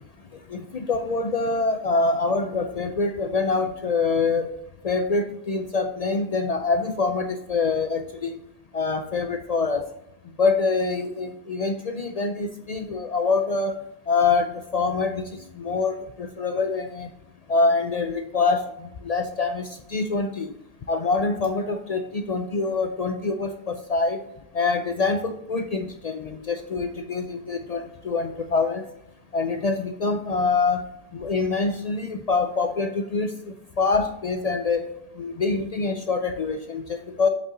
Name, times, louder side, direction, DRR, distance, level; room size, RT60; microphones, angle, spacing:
voice 1, 0.5-4.5 4.8-8.4 8.7-9.8 10.4-13.8 14.1-15.3 15.6-17.1 17.5-18.6 19.0-20.5 20.9-24.2 24.5-28.8 29.3-30.9 31.1-33.3 33.8-34.9 35.2-37.3, left 4 dB, 55° left, 7 dB, 0.4 m, -25 dB
7.5 x 5.3 x 3.8 m, 0.82 s
omnidirectional pair, 1.1 m